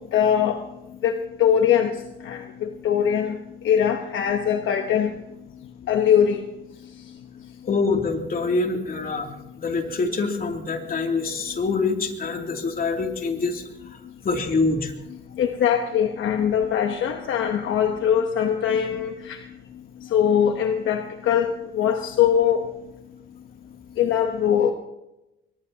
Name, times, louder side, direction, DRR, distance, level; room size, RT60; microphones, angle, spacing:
voice 1, 0.1-0.6 1.0-1.9 2.2-3.4 3.6-5.1 5.9-6.4 15.3-19.4 20.0-22.6 24.0-24.7, left 8 dB, 75° left, 5 dB, 1.1 m, -21 dB
voice 2, 7.6-9.3 9.6-13.6 13.9-14.9, left 4 dB, 45° left, 2 dB, 2.9 m, -25 dB
23.0 x 20.0 x 2.9 m, 0.93 s
cardioid pair, 90°, 20 cm